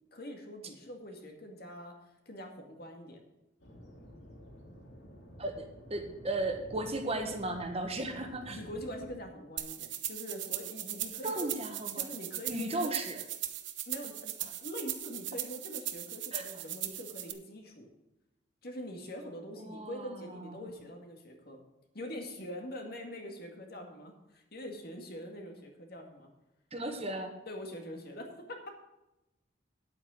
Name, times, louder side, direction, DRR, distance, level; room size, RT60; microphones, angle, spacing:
voice 1, 0.1-1.9 2.3-3.2 8.5-11.5 11.9-12.9 13.9-14.3 14.6-17.9 18.6-21.6 21.9-26.3 27.5-28.7, equal, 55° left, 3 dB, 2.1 m, -44 dB
sound 1, 3.6-9.2, equal, 70° left, 2.5 m, -51 dB
voice 2, 5.4-8.6 11.2-12.1 12.5-13.2 16.3-16.4 19.6-20.7 26.7-27.3, right 2 dB, 35° right, 5 dB, 1.3 m, -36 dB
sound 2, 9.6-17.3, right 12 dB, 70° right, 1.0 m, -39 dB
9.6 x 8.6 x 6.3 m, 0.95 s
head